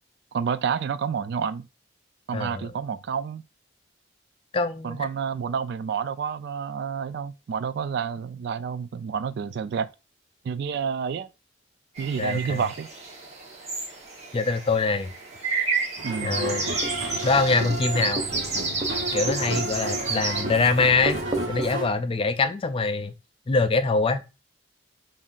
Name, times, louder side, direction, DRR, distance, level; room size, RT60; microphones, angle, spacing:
voice 1, 0.3-1.7 2.3-3.4 4.8-9.9 10.4-11.3 12.0-12.9 16.0-16.4, right 6 dB, 60° right, 0.3 m, -29 dB
voice 2, 2.3-2.7 4.5-5.1 12.2-12.6 14.3-15.1 16.2-16.8 17.2-18.2 19.1-21.2 21.5-23.1 23.5-24.2, left 4 dB, 30° left, 0.4 m, -24 dB
sound 1, 12.0-20.4, right 4 dB, 35° right, 1.0 m, -31 dB
sound 2, 16.0-21.9, right 2 dB, 80° right, 1.1 m, -32 dB
Writing, 16.2-21.8, right 1 dB, 15° right, 0.6 m, -35 dB
5.4 x 2.5 x 2.4 m
head